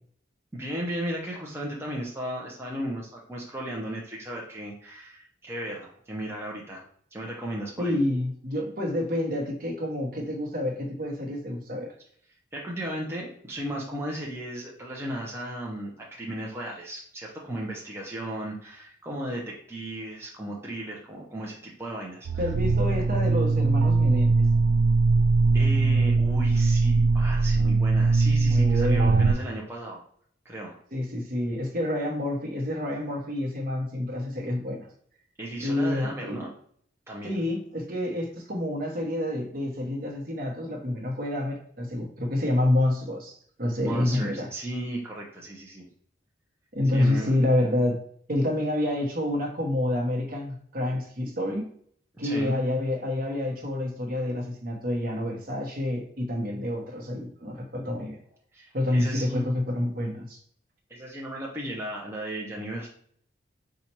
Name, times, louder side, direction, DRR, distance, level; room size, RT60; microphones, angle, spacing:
voice 1, 0.5-6.8 7.1-8.0 12.5-22.5 25.5-30.0 30.4-30.8 35.4-36.5 37.1-37.4 43.8-45.9 46.9-47.4 52.2-52.6 58.5-59.5 60.9-62.9, right 1 dB, 15° right, -3 dB, 0.7 m, -35 dB
voice 2, 7.8-11.9 22.4-24.4 28.4-29.3 30.9-34.9 35.6-36.4 37.2-44.5 46.7-48.0 48.3-51.6 52.2-58.2 58.7-60.4, left 1 dB, 50° right, 1 dB, 1.0 m, -28 dB
sound 1, 22.2-29.3, right 3 dB, 85° right, 0.4 m, -21 dB
4.2 x 2.4 x 4.4 m, 0.62 s
head